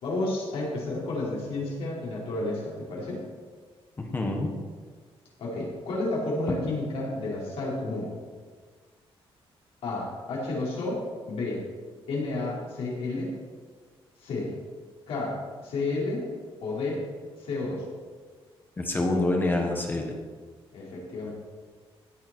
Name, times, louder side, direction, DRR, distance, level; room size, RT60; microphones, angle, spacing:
voice 1, 0.0-3.2 5.4-8.1 9.8-11.0 11.3-11.6 12.1-13.3 14.2-14.5 15.1-16.3 16.6-17.0 17.4-17.8 20.7-21.3, left 2 dB, 70° left, -5 dB, 4.6 m, -31 dB
voice 2, 4.0-4.5 18.8-20.1, left 2 dB, 20° left, 2 dB, 1.5 m, -26 dB
16.0 x 9.2 x 4.6 m, 1.6 s
wide cardioid pair, 180°, 10 cm